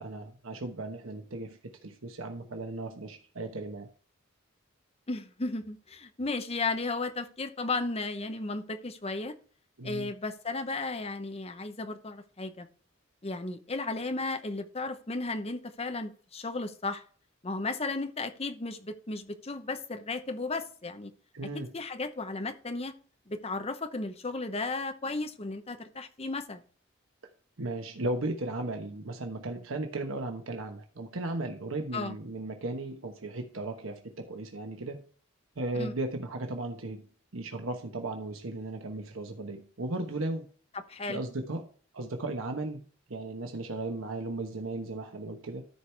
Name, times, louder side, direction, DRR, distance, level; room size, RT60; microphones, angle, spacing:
voice 1, 0.0-3.9 9.8-10.1 21.3-21.7 27.6-35.1 35.6-37.1 37.3-40.5 41.1-42.8 43.1-45.7, right 2 dB, 85° right, 1.1 m, -36 dB
voice 2, 5.1-9.4 9.8-12.7 13.2-17.0 17.4-21.1 21.5-22.9 23.3-26.6 31.9-32.2 35.7-35.9 40.9-41.2, left 3 dB, 30° left, 0.8 m, -34 dB
13.5 x 4.7 x 3.3 m
head